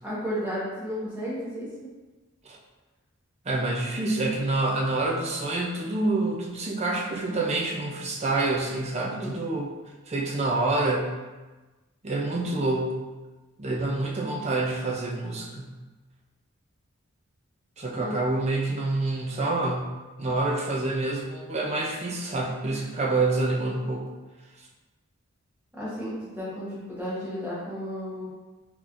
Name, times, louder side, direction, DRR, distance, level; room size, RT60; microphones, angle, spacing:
voice 1, 0.0-1.7 9.0-9.4 18.0-18.1 25.8-28.3, equal, 10° right, -9 dB, 1.0 m, -33 dB
voice 2, 3.5-9.7 10.1-11.1 12.0-13.0 13.6-15.8 17.8-24.1, right 2 dB, 30° right, -1 dB, 0.4 m, -27 dB
3.8 x 3.0 x 2.5 m, 1.2 s
head